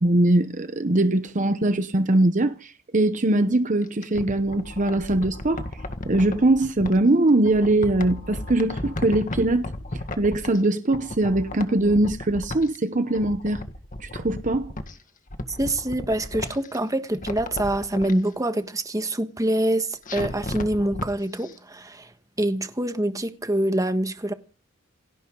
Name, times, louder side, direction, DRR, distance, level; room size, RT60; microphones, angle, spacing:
voice 1, 0.0-5.7 6.0-9.7 10.2-13.6 14.0-14.7, right 2 dB, 40° right, 0.9 m, -21 dB
sound 1, 3.8-7.0 7.4-10.7 10.9-12.8 13.1-14.9 15.3-16.8 17.1-18.1 20.1-21.1 21.4-21.5, left 1 dB, 40° left, 1.8 m, -34 dB
voice 2, 15.5-24.3, right 1 dB, 15° right, 1.4 m, -25 dB
28.5 x 11.0 x 3.9 m
head